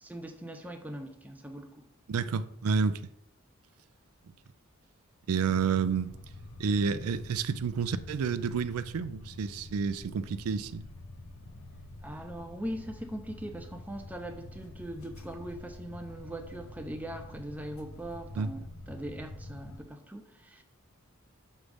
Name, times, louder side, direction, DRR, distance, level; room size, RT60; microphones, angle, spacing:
voice 1, 0.0-1.9 12.0-18.6 18.9-20.6, right 1 dB, 5° right, 0.5 m, -41 dB
voice 2, 2.1-2.9 5.3-6.1 6.6-10.8 18.4-18.5, right 5 dB, 85° right, 0.4 m, -29 dB
sound 1, 5.5-19.8, left 1 dB, 75° left, 0.7 m, -47 dB
6.2 x 3.2 x 5.1 m
head